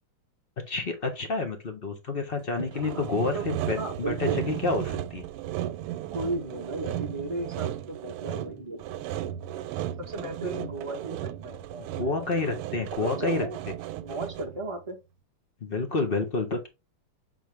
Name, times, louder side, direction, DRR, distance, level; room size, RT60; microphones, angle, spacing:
voice 1, 0.7-5.2 10.4-10.7 12.0-13.5 15.6-16.7, left 3 dB, 30° left, 1.2 m, -29 dB
Sawing, 2.6-14.6, right 12 dB, 90° right, 1.5 m, -35 dB
voice 2, 2.8-3.5 3.7-4.4 6.1-9.4 10.0-12.2 13.0-13.6 14.0-15.0, right 2 dB, 25° right, 0.8 m, -36 dB
7.1 x 3.9 x 3.4 m
omnidirectional pair, 2.4 m